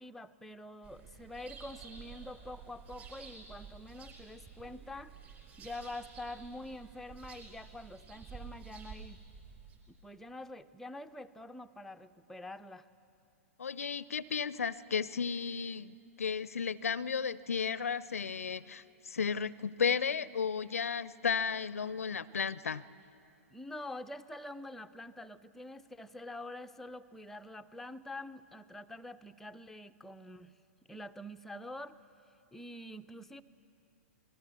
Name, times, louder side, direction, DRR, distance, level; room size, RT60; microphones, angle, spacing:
voice 1, 0.0-9.2 9.9-12.9 23.5-30.5 30.9-32.0 32.5-33.4, left 1 dB, 5° left, 8 dB, 0.5 m, -46 dB
sound 1, 0.8-9.8, right 5 dB, 25° right, 4.8 m, -51 dB
voice 2, 13.6-22.8, left 6 dB, 75° left, 20 dB, 0.5 m, -34 dB
26.0 x 19.0 x 7.1 m, 2.7 s
figure-of-eight pair, 110°, 8 cm